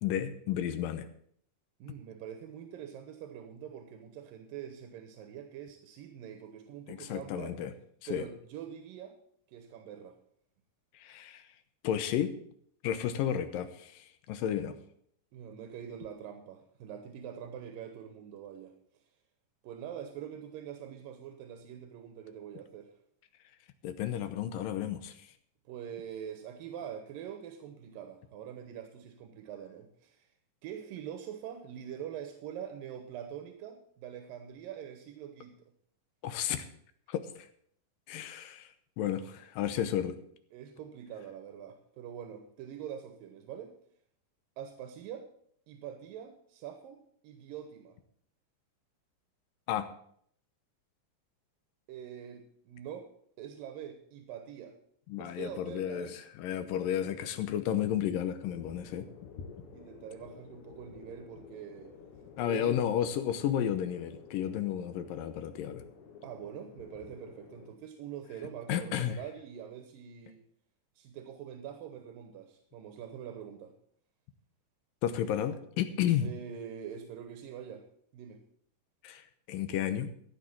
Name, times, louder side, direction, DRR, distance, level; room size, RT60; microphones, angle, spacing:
voice 1, 0.0-1.1 6.9-7.7 8.1-8.2 10.9-11.4 11.8-12.4 12.8-14.8 23.8-25.3 36.2-36.7 37.1-37.5 38.1-40.2 49.7-49.9 55.1-59.1 62.4-65.8 68.7-69.2 75.0-76.3 79.0-80.1, left 10 dB, 85° left, 10 dB, 2.6 m, -32 dB
voice 2, 1.8-7.5 8.1-9.2 9.5-10.2 15.3-18.7 19.6-22.9 25.7-30.3 30.6-35.5 40.5-43.7 44.6-45.3 45.7-48.0 51.9-53.1 53.4-54.8 55.2-56.2 59.7-62.0 62.4-62.7 66.2-70.4 71.0-73.7 76.2-77.8 78.1-78.4, right 9 dB, 90° right, 6 dB, 2.9 m, -44 dB
sound 1, 58.4-67.7, left 5 dB, 70° left, 2.7 m, -51 dB
14.5 x 6.3 x 7.3 m, 0.64 s
omnidirectional pair, 3.9 m